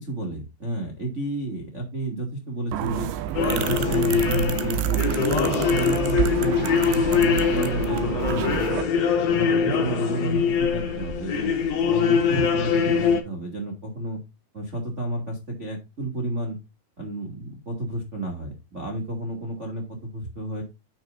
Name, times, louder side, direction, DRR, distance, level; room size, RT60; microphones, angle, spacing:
voice 1, 0.0-3.1 3.4-4.8 5.2-8.6 9.3-11.5 11.8-14.2 14.5-16.6 17.0-20.6, right 2 dB, 35° right, 1 dB, 1.1 m, -31 dB
sound 1, 2.7-8.8, right 11 dB, 80° right, 2.6 m, -28 dB
sound 2, 3.3-13.2, left 6 dB, 90° left, 1.4 m, -23 dB
9.4 x 9.4 x 2.6 m, 0.24 s
omnidirectional pair, 5.9 m